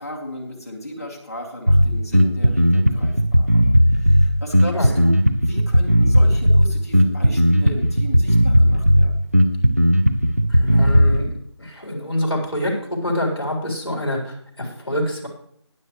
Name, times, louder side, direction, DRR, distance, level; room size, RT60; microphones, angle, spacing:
voice 1, 0.0-9.1, left 1 dB, 30° left, -2 dB, 2.1 m, -35 dB
Bass guitar, 1.7-11.3, equal, 30° right, 0.6 m, -16 dB
voice 2, 10.5-11.3 11.6-15.3, left 1 dB, 50° left, 0 dB, 3.9 m, -26 dB
19.5 x 7.8 x 3.2 m, 0.66 s
figure-of-eight pair, 180°, 15 cm